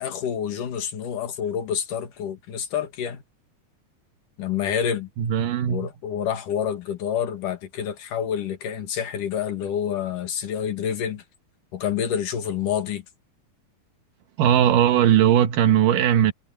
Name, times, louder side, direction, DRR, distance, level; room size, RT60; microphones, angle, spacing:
voice 1, 0.0-3.2 4.4-5.1 5.7-11.2 11.7-13.0, left 8 dB, 75° left, 3.6 m, -28 dB
voice 2, 5.2-5.8 14.4-16.3, right 10 dB, 85° right, 2.9 m, -18 dB
omnidirectional pair, 3.8 m